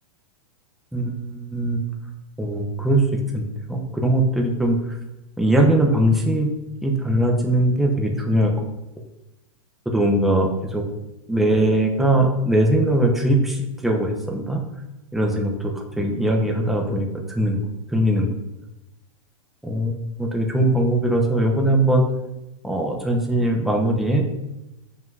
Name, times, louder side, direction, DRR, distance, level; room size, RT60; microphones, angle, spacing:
voice 1, 0.9-1.8 2.4-4.8 5.4-6.5 6.8-8.5 9.9-10.8 11.3-14.6 15.1-17.6 17.9-18.3 19.6-19.9 20.2-22.0 22.6-24.4, right 1 dB, ahead, 0 dB, 0.6 m, -21 dB
7.3 x 5.8 x 2.6 m, 0.94 s
supercardioid pair, 145°, 17 cm